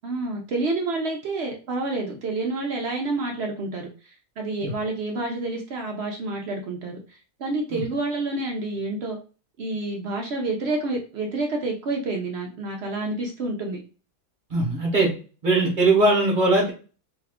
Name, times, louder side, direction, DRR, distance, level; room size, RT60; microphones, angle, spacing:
voice 1, 0.0-9.2 9.6-13.8, right 2 dB, 65° right, 2 dB, 0.6 m, -29 dB
voice 2, 14.5-15.1 15.4-16.7, right 2 dB, 40° right, -1 dB, 0.9 m, -20 dB
2.7 x 2.3 x 3.4 m, 0.36 s
omnidirectional pair, 1.6 m